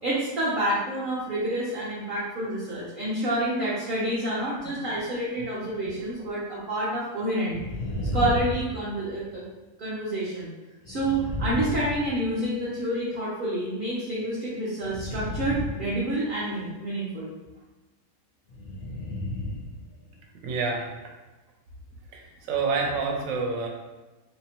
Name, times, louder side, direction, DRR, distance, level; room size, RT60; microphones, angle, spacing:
voice 1, 0.0-7.6 8.1-9.4 9.8-10.5 10.9-17.3, right 1 dB, 60° right, -7 dB, 0.5 m, -28 dB
sound 1, 7.5-9.3 10.8-12.7 14.8-16.5 18.5-19.8 20.1-20.2, left 1 dB, 65° left, 0.5 m, -33 dB
voice 2, 20.4-20.9 22.1-23.7, right 4 dB, 75° right, 0 dB, 1.0 m, -28 dB
2.8 x 2.1 x 2.7 m, 1.1 s
omnidirectional pair, 1.5 m